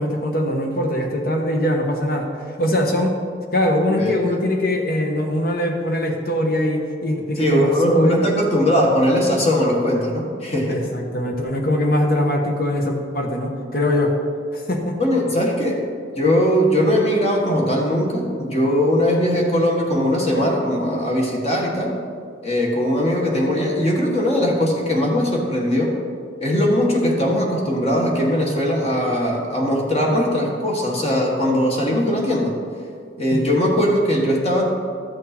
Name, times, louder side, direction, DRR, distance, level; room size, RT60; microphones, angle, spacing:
voice 1, 0.0-2.3 2.6-3.1 3.5-8.2 10.7-14.1 14.5-15.0 33.3-33.5, left 1 dB, 55° left, 2 dB, 1.3 m, -22 dB
voice 2, 7.4-10.8 15.0-15.8 16.2-21.9 22.4-25.9 26.4-32.5 33.2-34.6, equal, 35° left, -1 dB, 1.5 m, -20 dB
13.0 x 6.5 x 4.4 m, 2.2 s
head